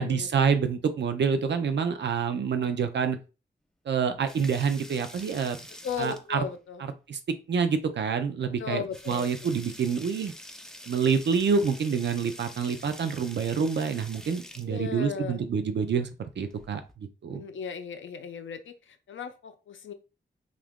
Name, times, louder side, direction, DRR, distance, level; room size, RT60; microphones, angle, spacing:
voice 1, 0.0-3.2 3.9-5.6 6.0-6.4 7.1-10.3 10.9-16.1 16.4-16.8 17.2-17.4, right 6 dB, 65° right, 9 dB, 0.5 m, -27 dB
sound 1, 4.1-6.5 7.9-8.0 8.4-8.5 8.8-14.7 16.4-16.9, left 1 dB, 5° left, 0.3 m, -46 dB
voice 2, 5.8-6.8 8.6-9.3 14.6-15.4 17.3-19.9, left 7 dB, 80° left, 9 dB, 0.5 m, -36 dB
2.8 x 2.5 x 3.4 m, 0.31 s
wide cardioid pair, 165°, 20 cm